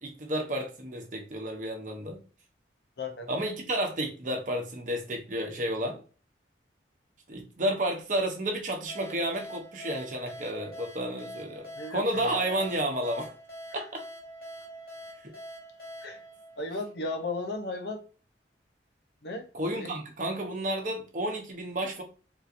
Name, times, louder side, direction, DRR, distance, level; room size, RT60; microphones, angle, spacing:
voice 1, 0.0-2.2 3.3-6.0 7.3-13.3 13.7-14.0 19.5-22.0, right 1 dB, 45° right, 0.8 m, -31 dB
voice 2, 3.0-3.3 11.8-12.4 13.7-13.8 16.0-16.2 16.6-18.0 19.2-19.5 19.7-19.9, left 2 dB, 70° left, 0.7 m, -35 dB
sound 1, 8.9-17.3, equal, 55° left, 1.4 m, -45 dB
3.7 x 2.8 x 2.5 m
head